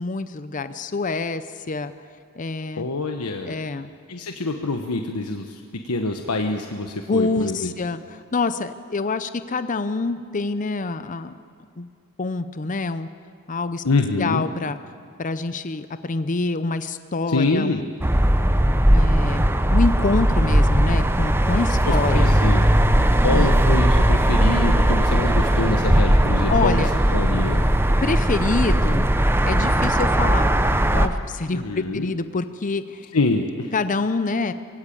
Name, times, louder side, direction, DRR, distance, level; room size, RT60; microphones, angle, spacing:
voice 1, 0.0-1.9 2.4-2.9 3.4-3.9 7.1-11.4 11.8-11.9 12.2-13.1 13.5-13.8 14.2-14.8 15.2-17.9 18.9-19.4 19.7-22.4 23.3-23.5 26.5-27.0 28.0-29.1 29.4-30.6 30.9-33.1 33.7-34.5, left 3 dB, 35° left, 12 dB, 0.6 m, -26 dB
voice 2, 2.8-3.6 4.1-7.7 13.8-14.4 17.3-17.8 21.8-22.7 23.2-26.8 27.1-27.6 31.5-32.1 33.1-33.7, left 2 dB, 85° left, 4 dB, 1.2 m, -25 dB
sound 1, 18.0-31.1, right 1 dB, 10° right, 0.8 m, -18 dB
22.5 x 16.5 x 8.6 m, 2.3 s
head